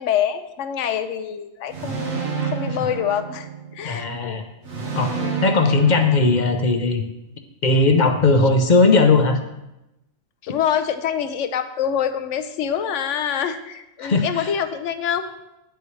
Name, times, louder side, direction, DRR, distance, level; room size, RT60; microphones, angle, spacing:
voice 1, 0.0-3.5 3.7-4.4 5.2-5.4 10.4-15.3, left 9 dB, 75° left, 10 dB, 1.0 m, -25 dB
sound 1, 1.7-3.9 4.6-6.8, right 6 dB, 70° right, 1.6 m, -29 dB
voice 2, 3.8-4.4 5.0-7.0 7.6-9.4 14.0-14.5, left 3 dB, 45° left, 6 dB, 0.7 m, -18 dB
9.2 x 8.1 x 3.2 m, 0.92 s
omnidirectional pair, 1.3 m